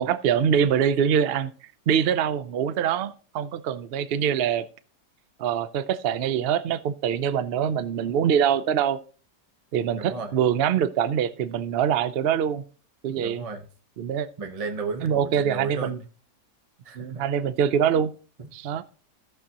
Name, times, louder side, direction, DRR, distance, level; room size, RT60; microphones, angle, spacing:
voice 1, 0.0-1.5 1.9-4.7 5.4-9.0 9.7-12.6 13.0-13.4 14.0-14.3 15.0-16.0 17.0-18.1 18.5-18.8, right 8 dB, 75° right, 14 dB, 0.5 m, -24 dB
voice 2, 10.0-10.4 13.1-13.6 14.4-16.0 16.8-17.2 18.4-18.5, right 4 dB, 35° right, 6 dB, 0.6 m, -33 dB
16.0 x 6.8 x 2.9 m, 0.39 s
omnidirectional pair, 1.8 m